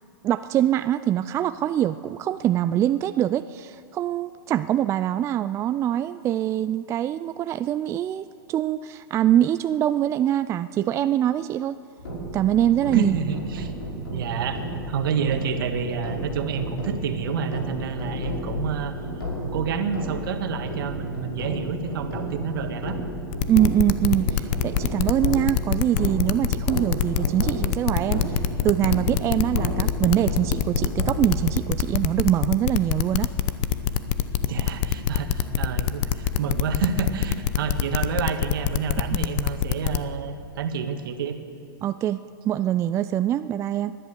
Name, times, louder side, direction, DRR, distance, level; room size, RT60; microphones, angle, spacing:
voice 1, 0.2-11.8 12.3-13.1 23.5-33.3 41.8-44.0, right 11 dB, 20° right, 12 dB, 0.3 m, -24 dB
sound 1, 12.0-31.4, equal, 80° left, 5.3 m, -32 dB
voice 2, 12.9-13.7 14.1-18.9 19.4-23.0 34.4-41.4, right 6 dB, 65° right, 7 dB, 1.6 m, -29 dB
sound 2, 23.3-40.0, left 11 dB, 45° left, 0.8 m, -24 dB
Musical instrument, 28.9-39.3, equal, 15° left, 1.9 m, -42 dB
19.5 x 11.0 x 6.6 m, 2.4 s
hypercardioid pair, 110°, 12 cm